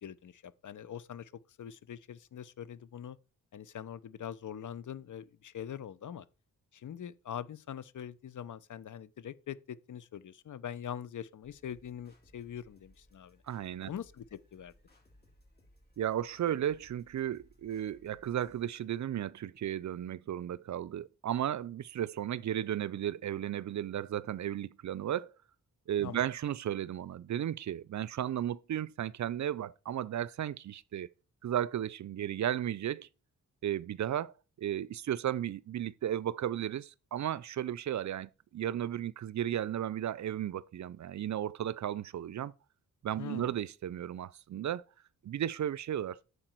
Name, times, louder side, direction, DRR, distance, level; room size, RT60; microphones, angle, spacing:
voice 1, 0.0-3.2 3.5-6.3 6.7-13.4 13.9-14.7 26.0-26.3 43.2-43.5, left 9 dB, 60° left, 0.7 m, -43 dB
sound 1, 11.4-18.6, equal, 30° left, 3.2 m, -64 dB
voice 2, 13.5-13.9 16.0-25.3 25.9-31.1 31.4-33.1 33.6-42.5 43.0-44.8 45.2-46.2, right 11 dB, 55° right, 0.5 m, -34 dB
8.9 x 6.7 x 4.5 m
cardioid pair, 90°, 34 cm